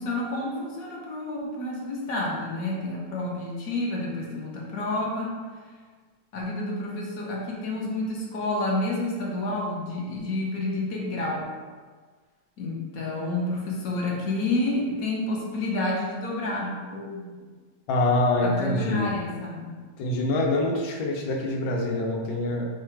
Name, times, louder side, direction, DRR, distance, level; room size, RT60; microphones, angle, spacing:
voice 1, 0.0-5.4 6.3-11.5 12.6-17.5 18.4-19.8, left 2 dB, 60° left, -2 dB, 1.1 m, -29 dB
voice 2, 17.9-19.1 20.0-22.7, left 2 dB, 90° left, 0 dB, 1.5 m, -25 dB
4.7 x 2.4 x 4.4 m, 1.5 s
omnidirectional pair, 2.1 m